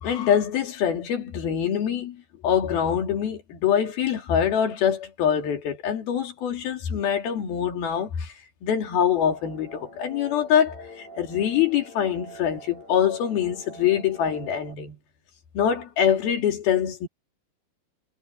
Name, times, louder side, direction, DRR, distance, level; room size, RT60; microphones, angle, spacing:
voice 1, 0.0-2.2 2.4-8.3 8.6-15.0 15.5-17.1, left 9 dB, 80° left, 4.4 m, -24 dB
sound 1, 9.2-14.7, right 1 dB, 50° left, 8.5 m, -45 dB
omnidirectional pair, 4.3 m